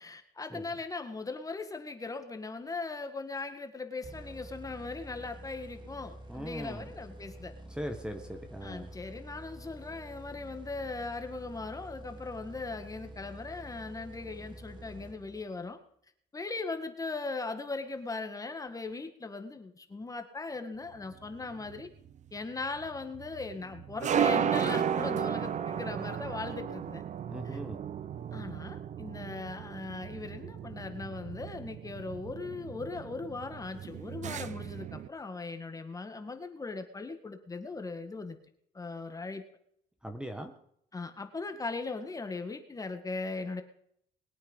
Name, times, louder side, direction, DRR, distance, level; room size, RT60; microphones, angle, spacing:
voice 1, 0.0-7.5 8.6-15.8 16.3-21.9 22.3-27.0 27.4-27.6 28.3-38.4 38.7-39.4 40.9-43.6, left 3 dB, 20° left, 7 dB, 1.8 m, -39 dB
sound 1, 4.0-15.7, right 1 dB, 25° right, 2.6 m, -48 dB
voice 2, 6.3-6.8 7.7-8.9 27.3-27.8 40.0-40.5, equal, 5° right, 7 dB, 1.5 m, -39 dB
sound 2, 21.0-35.1, right 8 dB, 45° right, 0.8 m, -35 dB
21.0 x 8.9 x 5.5 m, 0.69 s
cardioid pair, 110°, 17 cm